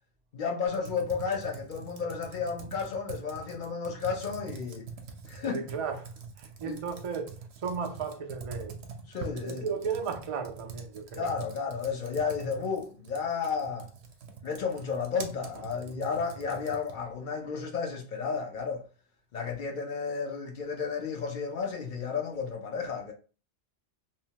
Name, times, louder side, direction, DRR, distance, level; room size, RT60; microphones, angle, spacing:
voice 1, 0.3-4.9 5.3-5.6 6.6-6.8 9.1-9.7 11.2-13.9 14.4-18.8 19.3-23.1, left 5 dB, 60° left, 0.6 m, -32 dB
Computer keyboard, 0.7-17.1, right 5 dB, 75° right, 0.8 m, -45 dB
voice 2, 5.4-6.1 6.4-8.8 9.2-11.3, right 6 dB, 60° right, 0.3 m, -35 dB
2.8 x 2.0 x 2.8 m
omnidirectional pair, 1.1 m